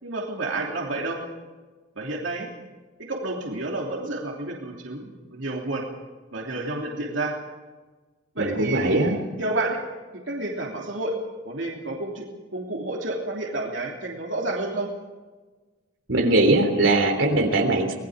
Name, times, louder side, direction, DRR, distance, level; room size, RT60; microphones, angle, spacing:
voice 1, 0.0-1.2 2.0-2.5 3.1-5.8 6.3-7.3 8.3-9.8 10.3-11.2 11.4-12.2 12.5-14.9, right 2 dB, 70° right, -1 dB, 3.1 m, -30 dB
voice 2, 8.4-9.2 16.1-17.9, right 2 dB, 90° right, 4 dB, 3.4 m, -20 dB
26.0 x 20.0 x 5.1 m, 1.3 s
head